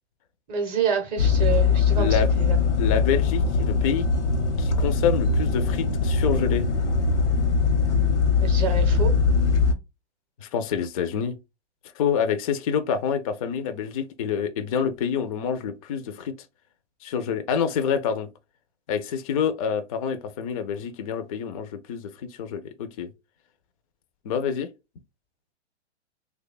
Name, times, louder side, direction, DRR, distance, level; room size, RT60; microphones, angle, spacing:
voice 1, 0.5-2.6 8.4-9.2, right 6 dB, 25° right, 0.6 m, -28 dB
sound 1, 1.2-9.7, left 4 dB, 90° left, 0.9 m, -21 dB
voice 2, 1.9-2.3 2.8-4.0 4.6-6.7 10.4-11.4 12.0-16.3 17.0-18.3 18.9-23.1 24.2-24.7, left 7 dB, 35° left, 0.4 m, -27 dB
3.0 x 2.2 x 3.9 m
hypercardioid pair, 135°, 35 cm